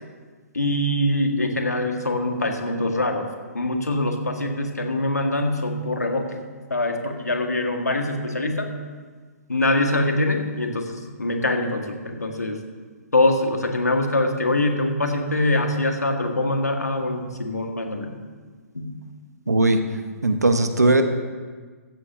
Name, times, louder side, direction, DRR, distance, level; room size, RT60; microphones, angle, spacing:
voice 1, 0.5-3.3 3.5-6.3 6.7-8.7 9.5-12.6 13.1-18.1 18.7-18.9, left 1 dB, 80° left, 4 dB, 1.8 m, -23 dB
voice 2, 19.5-19.8 20.2-21.0, right 2 dB, 80° right, 8 dB, 1.3 m, -18 dB
15.5 x 15.0 x 2.8 m, 1.5 s
figure-of-eight pair, 125°, 9 cm